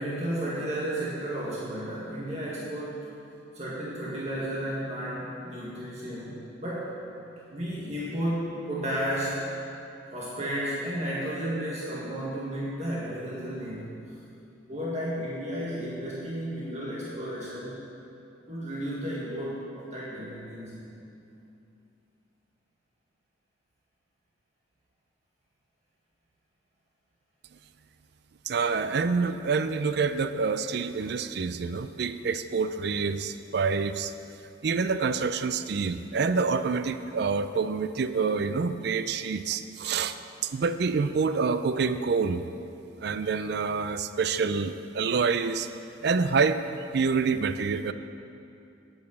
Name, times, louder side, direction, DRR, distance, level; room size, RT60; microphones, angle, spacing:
voice 1, 0.0-3.2 3.5-6.9 7.5-9.5 10.1-14.0 14.7-17.8 18.5-21.0, right 1 dB, 35° right, -6 dB, 1.7 m, -33 dB
voice 2, 28.5-34.1 34.6-40.2 40.4-42.4 43.0-45.7 46.0-46.6 46.9-47.9, right 5 dB, 55° right, 11 dB, 0.4 m, -27 dB
9.5 x 8.7 x 7.0 m, 2.7 s
head